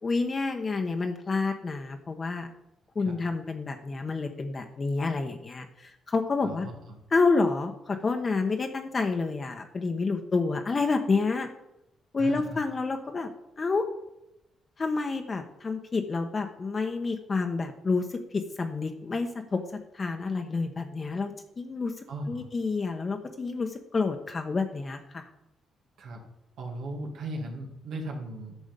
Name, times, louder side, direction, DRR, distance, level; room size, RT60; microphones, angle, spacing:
voice 1, 0.0-2.5 2.9-6.7 7.1-11.5 12.1-13.3 13.6-13.8 14.8-19.6 19.9-25.3, left 4 dB, 35° left, 5 dB, 1.0 m, -29 dB
voice 2, 6.4-7.0 12.2-12.6 22.1-22.4 26.0-26.2 26.6-28.6, right 1 dB, 75° right, 0 dB, 2.1 m, -37 dB
10.5 x 6.1 x 5.2 m, 0.86 s
cardioid pair, 90°, 0 cm